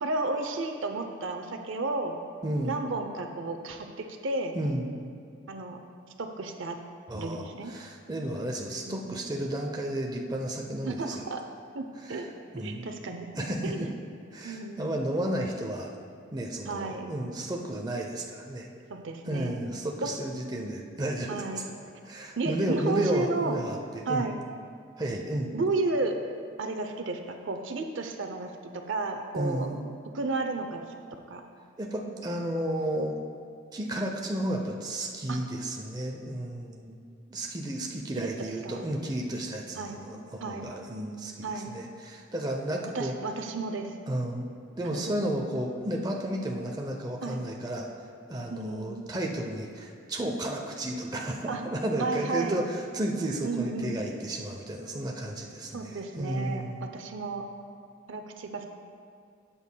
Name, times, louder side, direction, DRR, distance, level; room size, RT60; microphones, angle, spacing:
voice 1, 0.0-2.2 2.6-4.6 5.5-5.8 6.2-6.8 7.1-7.7 8.8-9.2 10.9-11.4 11.7-12.3 12.6-13.9 14.4-14.9 16.7-17.1 18.9-19.6 20.0-20.1 21.3-21.6 22.4-23.6 24.1-24.4 25.5-26.1 26.6-29.7 30.1-30.9 31.3-31.4 35.3-35.4 38.2-38.8 39.8-40.0 40.4-40.7 41.4-41.7 42.9-43.9 44.8-45.0 47.2-47.5 48.5-49.0 51.4-51.6 52.0-52.6 53.4-54.0 55.7-57.4 58.1-58.7, right 3 dB, 70° right, 5 dB, 0.6 m, -33 dB
voice 2, 2.4-2.8 4.6-4.9 7.1-11.3 12.0-12.2 12.5-12.9 13.3-13.7 14.3-15.9 16.3-18.7 19.3-21.6 22.1-24.3 25.0-25.5 29.3-29.9 31.8-33.2 33.7-37.0 37.3-43.1 44.1-44.5 44.8-47.9 48.3-56.9, right 1 dB, 20° right, 0 dB, 0.6 m, -32 dB
12.5 x 8.2 x 2.2 m, 2.3 s
head